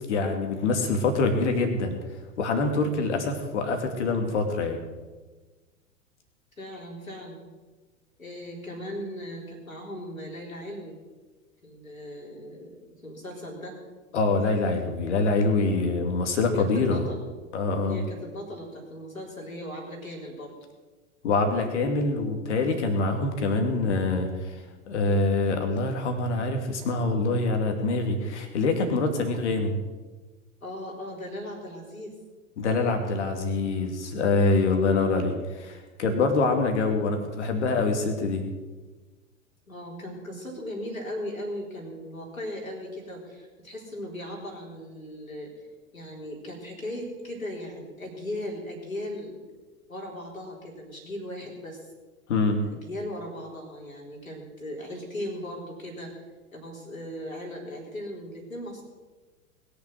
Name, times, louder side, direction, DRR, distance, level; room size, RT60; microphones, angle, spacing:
voice 1, 0.1-2.0 2.4-4.8 14.1-17.1 17.5-18.0 21.2-29.8 32.6-35.3 35.6-38.4 52.3-52.6, left 3 dB, 55° left, 5 dB, 2.6 m, -25 dB
voice 2, 6.6-7.4 8.2-11.0 11.6-13.8 16.5-17.2 17.9-20.6 30.6-32.1 34.8-35.2 39.7-45.5 45.9-49.4 49.9-51.8 52.6-56.1 56.5-58.8, left 1 dB, 80° left, -1 dB, 4.0 m, -38 dB
21.0 x 7.0 x 6.4 m, 1.3 s
figure-of-eight pair, 95°, 40 cm